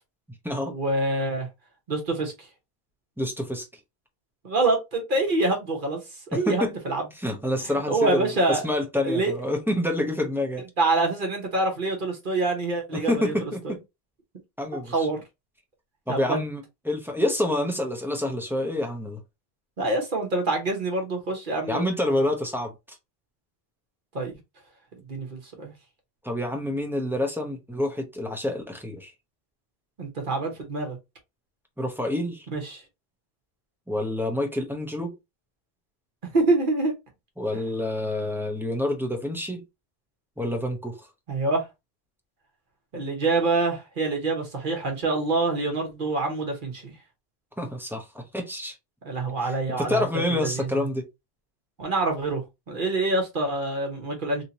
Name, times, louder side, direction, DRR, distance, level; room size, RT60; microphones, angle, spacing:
voice 1, 0.7-1.5 1.9-2.5 4.4-6.0 6.3-7.0 7.7-8.6 9.0-9.3 10.8-13.3 13.6-13.7 14.9-15.2 16.1-16.4 19.8-21.9 24.1-24.3 25.1-25.7 30.0-31.0 32.5-32.8 36.3-36.9 41.3-41.6 42.9-46.9 49.0-50.0 50.3-50.7 51.8-52.4 52.7-54.4, right 2 dB, 55° right, 1.1 m, -26 dB
voice 2, 3.2-3.7 6.3-6.7 7.1-10.6 12.9-13.8 14.6-15.1 16.1-19.2 21.7-22.7 26.2-29.1 31.8-32.5 33.9-35.1 37.4-39.6 40.4-41.0 47.6-48.8 49.4-51.1, left 1 dB, 5° right, 0.5 m, -28 dB
3.1 x 2.8 x 2.8 m
omnidirectional pair, 1.1 m